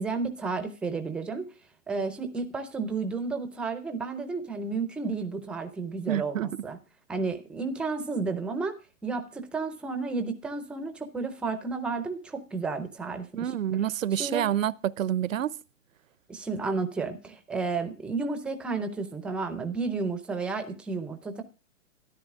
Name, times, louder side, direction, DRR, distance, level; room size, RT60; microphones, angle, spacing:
voice 1, 0.0-1.5 1.9-6.8 7.1-8.8 9.0-13.5 14.2-14.5 16.3-21.4, right 4 dB, 5° right, 0.5 m, -32 dB
voice 2, 6.1-6.5 13.3-15.5, right 10 dB, 75° right, 0.8 m, -28 dB
13.0 x 10.5 x 3.6 m
hypercardioid pair, 150°, 39 cm